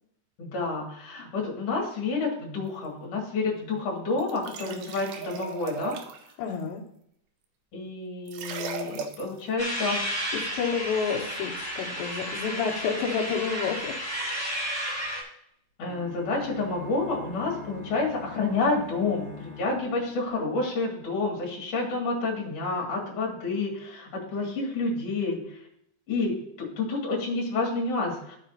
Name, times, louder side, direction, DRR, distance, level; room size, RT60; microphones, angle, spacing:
voice 1, 0.4-6.0 7.7-10.0 15.8-25.6 26.1-28.4, left 3 dB, 45° left, -2 dB, 2.9 m, -29 dB
sound 1, 4.2-6.3 8.3-9.4, right 5 dB, 80° right, 2.2 m, -37 dB
voice 2, 6.4-6.8 10.3-14.0, left 6 dB, 85° left, -2 dB, 3.5 m, -29 dB
sound 2, 9.6-15.2, equal, 10° right, 2.2 m, -32 dB
sound 3, 15.8-20.8, left 4 dB, 50° right, 2.4 m, -43 dB
14.5 x 6.1 x 2.8 m, 0.73 s
omnidirectional pair, 5.0 m